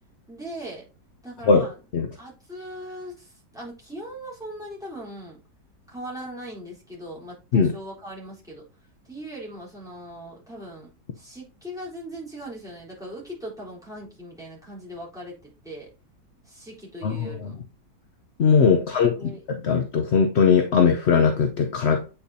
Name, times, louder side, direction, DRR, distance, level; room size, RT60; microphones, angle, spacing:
voice 1, 0.3-0.8 1.2-1.7 2.1-5.4 5.9-8.6 9.1-10.9 11.2-15.9 16.5-17.6 18.7-19.4, right 1 dB, ahead, 3.7 m, -39 dB
voice 2, 17.0-17.5 18.4-22.0, left 6 dB, 55° left, 0.8 m, -20 dB
8.4 x 5.6 x 2.7 m
omnidirectional pair, 1.9 m